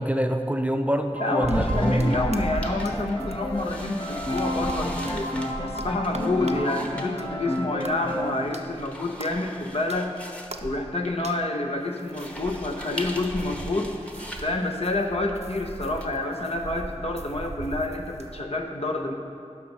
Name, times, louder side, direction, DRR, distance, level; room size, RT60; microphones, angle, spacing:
voice 1, 0.0-2.2, equal, 10° right, 5 dB, 0.6 m, -25 dB
Piano, 1.1-8.5, left 1 dB, 35° left, 1.1 m, -31 dB
voice 2, 1.2-5.4 5.6-10.1 10.6-13.9 14.4-19.1, left 2 dB, 55° left, 2 dB, 0.9 m, -28 dB
sound 1, 1.4-7.4 7.7-11.5 12.0-18.4, right 2 dB, 65° right, 0.6 m, -37 dB
sound 2, 1.5-16.1, equal, 10° left, 1.0 m, -42 dB
11.0 x 6.1 x 5.6 m, 2.5 s
wide cardioid pair, 45°, 12 cm